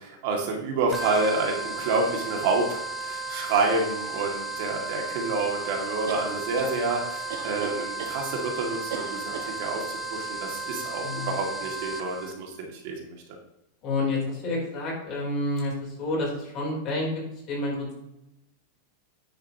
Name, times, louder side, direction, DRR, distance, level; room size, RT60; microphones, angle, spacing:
voice 1, 0.0-13.2, right 3 dB, 55° right, 1 dB, 2.1 m, -28 dB
sound 1, 0.9-12.3, right 3 dB, 5° right, 0.7 m, -34 dB
sound 2, 6.1-6.7 7.3-8.2 8.9-9.5, right 6 dB, 75° right, 1.4 m, -36 dB
voice 2, 13.8-15.7 16.0-17.1 17.5-17.9, left 2 dB, 35° left, -2 dB, 3.6 m, -29 dB
9.8 x 8.1 x 2.9 m, 0.87 s
supercardioid pair, 165°, 0 cm